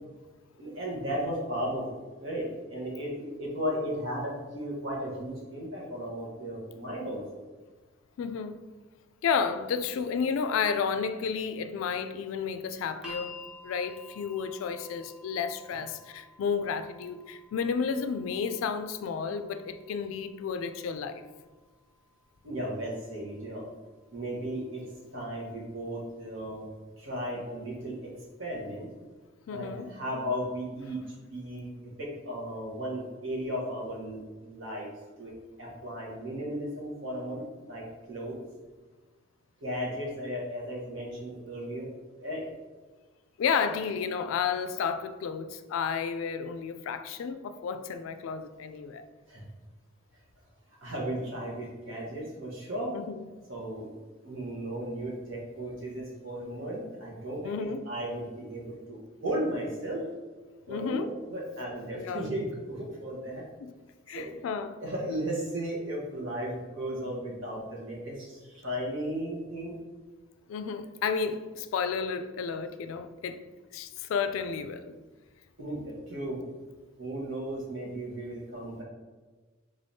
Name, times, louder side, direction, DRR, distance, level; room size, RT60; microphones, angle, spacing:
voice 1, 0.6-1.8 2.2-7.4 15.7-15.8 22.4-23.6 24.1-24.9 25.1-26.7 27.0-28.1 28.4-28.9 29.5-31.0 31.3-31.7 32.0-34.9 35.2-37.4 37.7-38.3 39.6-41.9 42.2-42.4 49.3-49.4 50.8-52.9 53.5-53.9 54.2-57.5 57.8-60.0 60.7-63.4 64.1-64.3 64.8-69.8 75.6-76.4 77.0-78.8, equal, 75° right, 1.2 m, -35 dB
voice 2, 8.2-8.6 9.2-13.4 13.6-21.2 29.5-29.9 43.4-49.0 52.9-53.2 57.4-57.8 60.7-61.1 61.9-62.3 63.6-63.7 64.1-64.8 70.5-73.4 73.7-74.9, left 6 dB, 85° left, 0.3 m, -32 dB
sound 1, 13.0-25.1 26.2-26.3, left 3 dB, 5° right, 0.6 m, -52 dB
3.7 x 3.4 x 2.7 m
head